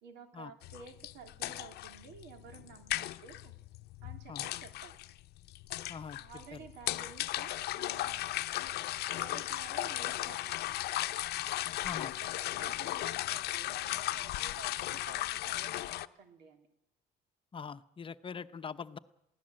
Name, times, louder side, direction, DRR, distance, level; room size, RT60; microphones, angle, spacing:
voice 1, 0.0-3.6 4.0-5.0 6.2-8.9 9.1-10.9 12.0-16.7, right 5 dB, 85° right, 6 dB, 3.1 m, -53 dB
sound 1, 0.6-16.1, left 15 dB, 70° left, 0.7 m, -36 dB
voice 2, 11.8-12.2 17.5-19.0, left 6 dB, 30° left, 11 dB, 0.9 m, -42 dB
22.0 x 16.5 x 7.7 m, 0.85 s
cardioid pair, 110°, 17 cm